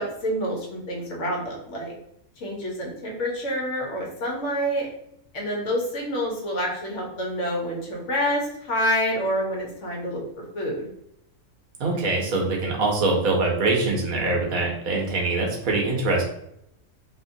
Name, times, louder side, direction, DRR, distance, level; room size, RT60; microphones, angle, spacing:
voice 1, 0.0-1.9 2.4-4.9 5.3-10.2 10.5-10.9, equal, 65° left, -2 dB, 1.2 m, -27 dB
voice 2, 11.8-16.2, right 3 dB, 90° right, -1 dB, 1.3 m, -23 dB
3.1 x 2.9 x 2.6 m, 0.76 s
omnidirectional pair, 1.4 m